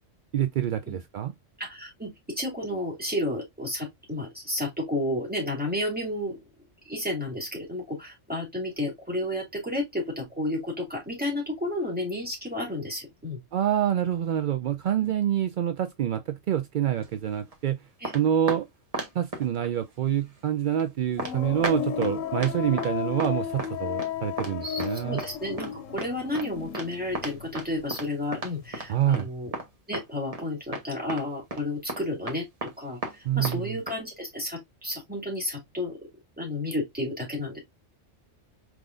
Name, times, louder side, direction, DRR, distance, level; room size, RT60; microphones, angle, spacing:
voice 1, 0.3-1.3 13.5-17.8 18.1-18.6 19.1-25.2 28.9-29.3 33.2-33.8, right 10 dB, 65° right, 0.5 m, -26 dB
voice 2, 1.6-6.4 6.9-13.4 15.0-15.1 18.0-18.1 24.6-29.5 29.9-33.0 33.4-36.0 36.4-37.6, left 1 dB, 5° right, 2.4 m, -32 dB
sound 1, 17.0-17.5 18.0-18.6 18.9-19.7 20.2-20.3 20.8-20.9 21.2-21.3 21.6-22.1 22.4-22.9 23.2-23.3 23.6-24.1 24.4-24.5 24.8-24.9 25.2-25.3 25.6-25.7 26.0-26.1 26.4-26.5 26.7-26.9 27.1-28.9 29.1-29.2 29.5-30.0 30.3-30.5 30.7-30.8 31.1-31.2 31.5-31.6 31.9-32.7 33.0-33.2 33.4-33.6 33.9-34.0, right 2 dB, 30° right, 1.1 m, -34 dB
sound 2, 21.2-28.0 28.3-29.1, left 9 dB, 85° left, 1.0 m, -34 dB
4.8 x 3.6 x 2.5 m
omnidirectional pair, 1.3 m